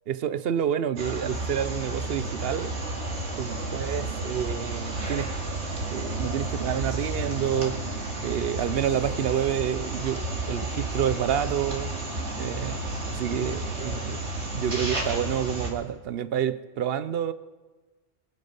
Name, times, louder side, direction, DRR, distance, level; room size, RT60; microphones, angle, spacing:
voice 1, 0.1-2.7 3.4-5.3 5.9-7.8 8.2-11.9 12.4-12.8 13.1-14.2 14.5-17.3, right 9 dB, 60° right, 14 dB, 0.9 m, -28 dB
sound 1, 1.0-15.7, right 2 dB, 75° right, 2.8 m, -32 dB
22.5 x 9.5 x 5.4 m, 1.3 s
omnidirectional pair, 1.2 m